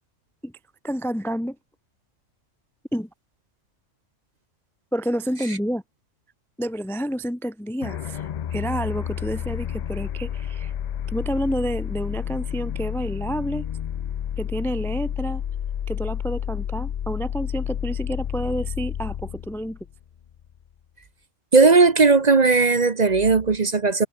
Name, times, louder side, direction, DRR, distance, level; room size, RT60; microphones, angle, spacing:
voice 1, 0.8-1.6 2.9-3.1 4.9-5.8 6.6-10.7 11.1-13.7 14.4-15.4 15.9-19.8, equal, ahead, 0.6 m, -29 dB
sound 1, 7.8-20.5, left 9 dB, 90° left, 0.3 m, -30 dB
voice 2, 21.5-24.1, right 4 dB, 35° right, 1.0 m, -17 dB
omnidirectional pair, 1.3 m